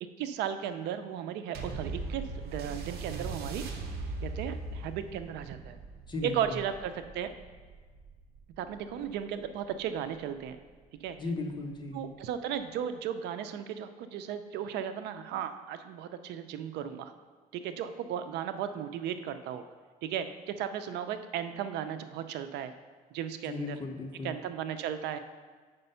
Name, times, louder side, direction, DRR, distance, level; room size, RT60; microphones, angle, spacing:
voice 1, 0.2-3.7 4.2-5.8 6.2-7.3 8.6-10.6 11.0-11.2 11.9-17.1 17.5-19.7 20.0-22.7 23.1-23.8 24.2-25.2, right 9 dB, 85° right, 10 dB, 0.5 m, -35 dB
sound 1, 1.5-10.3 11.1-11.2, right 3 dB, 70° right, 0.9 m, -40 dB
voice 2, 6.1-6.6 11.2-12.0 23.4-24.4, left 3 dB, 25° left, 2 dB, 1.0 m, -36 dB
6.7 x 5.1 x 5.5 m, 1.4 s
cardioid pair, 110°, 17 cm